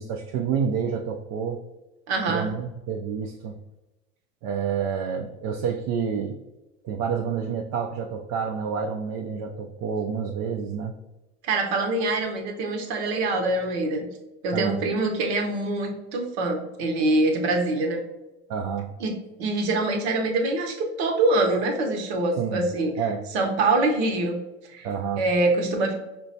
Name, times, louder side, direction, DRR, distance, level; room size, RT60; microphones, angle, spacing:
voice 1, 0.0-1.6 2.3-3.6 4.4-6.4 6.8-10.9 14.5-14.8 18.5-18.9 22.4-22.6 23.0-23.2 24.8-25.2, right 6 dB, 50° right, 3 dB, 0.5 m, -28 dB
voice 2, 2.1-2.5 11.4-14.1 14.4-18.0 19.0-22.9 23.3-24.9 25.2-25.9, right 2 dB, 75° right, 3 dB, 0.9 m, -24 dB
5.2 x 2.2 x 2.6 m, 1.0 s
hypercardioid pair, 85°, 33 cm